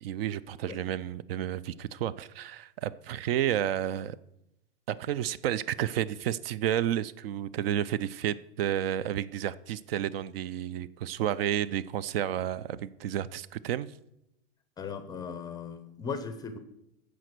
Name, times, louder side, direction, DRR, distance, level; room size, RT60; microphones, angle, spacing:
voice 1, 0.0-4.2 4.9-13.9, right 11 dB, 60° right, 18 dB, 0.5 m, -31 dB
voice 2, 14.8-16.6, left 5 dB, 10° left, 10 dB, 0.5 m, -37 dB
14.5 x 5.1 x 6.1 m, 0.83 s
supercardioid pair, 150°, 33 cm